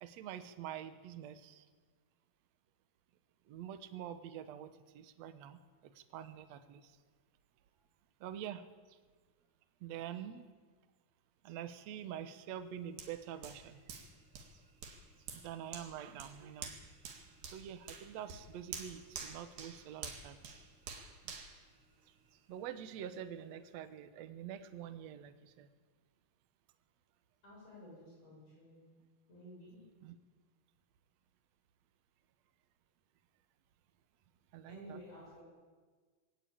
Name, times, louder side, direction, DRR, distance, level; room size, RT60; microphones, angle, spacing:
voice 1, 0.0-1.7 3.5-7.0 8.2-9.0 9.8-10.5 11.4-13.8 15.3-16.7 17.5-20.4 21.2-21.4 22.5-25.7 30.0-30.2 34.5-35.0, right 10 dB, 85° right, 10 dB, 1.5 m, -46 dB
Hands, 13.0-22.5 23.0-23.1, right 5 dB, 60° right, 3.7 m, -49 dB
voice 2, 27.4-28.8 29.3-29.8 34.7-35.4, equal, 40° left, -5 dB, 8.8 m, -53 dB
21.5 x 17.5 x 8.8 m, 1.4 s
omnidirectional pair, 4.7 m